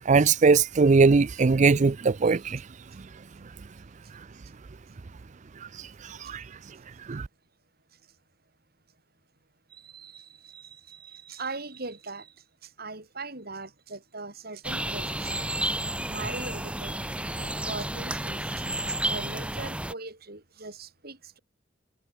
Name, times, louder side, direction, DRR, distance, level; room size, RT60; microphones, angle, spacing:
voice 1, 0.1-2.6 5.8-6.4 7.1-7.3, right 4 dB, 40° right, 0.5 m, -21 dB
voice 2, 9.7-12.3 12.6-15.3 16.1-17.0 17.3-18.6 19.1-21.4, right 3 dB, 55° right, 7.7 m, -40 dB
sound 1, 14.6-19.9, right 1 dB, 5° right, 2.5 m, -31 dB
head